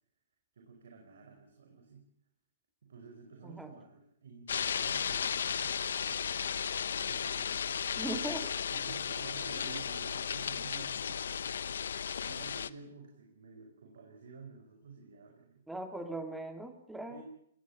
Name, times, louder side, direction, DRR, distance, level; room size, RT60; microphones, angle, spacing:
voice 1, 0.5-2.1 2.8-8.0 8.3-8.4 8.7-11.7 12.2-15.6 17.1-17.2, right 4 dB, 75° right, 2 dB, 5.0 m, -51 dB
sound 1, 4.5-12.7, left 7 dB, 80° left, 0.8 m, -35 dB
voice 2, 7.9-8.5 15.7-17.2, right 2 dB, 5° right, 6 dB, 2.3 m, -39 dB
22.0 x 19.5 x 7.4 m, 0.70 s
hypercardioid pair, 145°, 0 cm